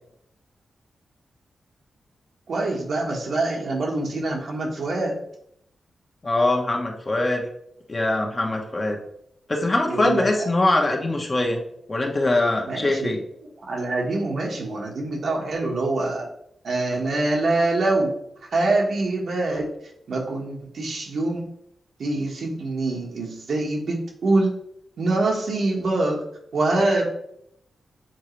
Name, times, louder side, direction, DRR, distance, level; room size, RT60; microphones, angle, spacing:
voice 1, 2.5-5.2 9.9-10.5 12.7-13.2 13.7-16.3 16.6-18.1 18.5-19.7 20.1-21.5 22.0-24.5 25.0-26.2 26.5-27.0, right 2 dB, 70° right, -1 dB, 1.4 m, -24 dB
voice 2, 6.2-7.5 7.9-9.0 9.5-11.6 11.9-13.2, left 2 dB, 35° left, 1 dB, 1.2 m, -22 dB
7.4 x 3.9 x 3.2 m, 0.74 s
cardioid pair, 80°, 0 cm